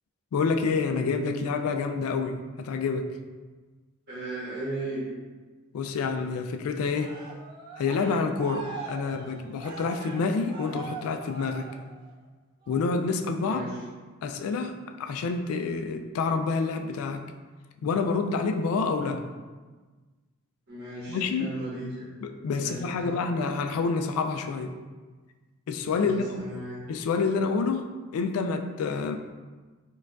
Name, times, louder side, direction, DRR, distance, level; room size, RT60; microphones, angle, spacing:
voice 1, 0.3-3.1 5.7-7.2 7.8-11.7 12.7-13.6 14.2-17.2 17.8-19.2 21.1-21.5 22.2-24.7 25.7-26.3 26.9-29.2, left 4 dB, 80° left, 11 dB, 0.3 m, -28 dB
voice 2, 4.1-5.0 13.4-13.8 20.7-22.0 22.5-23.2 25.9-26.8, right 1 dB, 50° right, -7 dB, 1.2 m, -36 dB
Cheering, 6.9-12.2 12.6-13.0, right 4 dB, 20° right, 0.4 m, -42 dB
4.4 x 2.3 x 2.3 m, 1.4 s
head